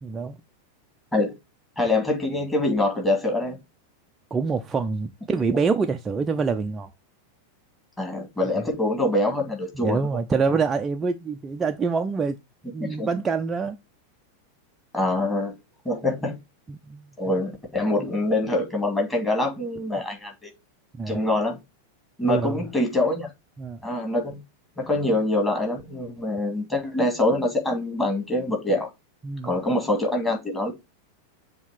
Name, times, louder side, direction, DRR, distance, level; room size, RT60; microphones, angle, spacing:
voice 1, 0.0-0.4 4.3-6.9 9.7-12.4 12.7-13.8 16.7-17.1 20.9-21.2 22.2-22.6 23.6-23.8 29.2-29.5, right 5 dB, 20° right, 0.5 m, -26 dB
voice 2, 1.8-3.6 8.0-10.0 12.8-13.1 14.9-15.5 15.8-16.4 17.2-20.5 21.1-21.6 22.2-23.3 23.8-24.4 24.8-28.9 29.4-30.7, left 2 dB, 10° left, 2.4 m, -24 dB
7.1 x 2.9 x 5.7 m
figure-of-eight pair, 90°, 0 cm